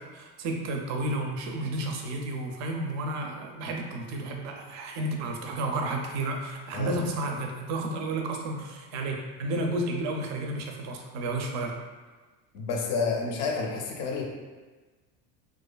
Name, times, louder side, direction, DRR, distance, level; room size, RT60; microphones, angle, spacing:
voice 1, 0.1-11.7, right 2 dB, 50° right, 2 dB, 0.4 m, -32 dB
voice 2, 12.5-14.2, left 4 dB, 50° left, 0 dB, 0.5 m, -29 dB
2.5 x 2.4 x 2.2 m, 1.3 s
cardioid pair, 135°, 35 cm